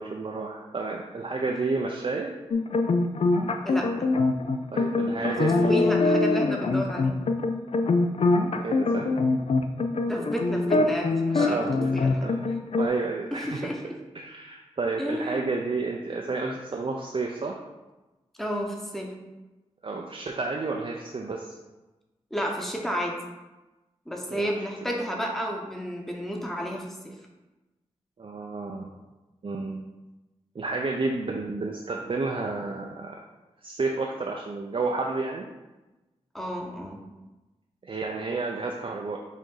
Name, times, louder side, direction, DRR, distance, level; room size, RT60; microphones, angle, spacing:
voice 1, 0.0-2.3 4.7-5.9 8.6-9.2 11.4-11.9 12.2-12.4 12.8-13.6 14.1-17.6 19.8-21.6 24.3-24.6 28.2-28.9 29.4-29.8 30.5-33.2 33.6-35.5 37.8-39.2, right 3 dB, 45° right, 0 dB, 0.5 m, -31 dB
sound 1, 2.5-12.9, left 3 dB, 55° left, 0.4 m, -24 dB
voice 2, 5.6-7.1 10.1-12.3 13.3-13.8 15.0-15.4 18.4-19.1 22.3-23.1 24.1-27.1 36.3-37.0, equal, ahead, -1 dB, 1.0 m, -31 dB
5.1 x 2.7 x 3.8 m, 1.1 s
cardioid pair, 40°, 12 cm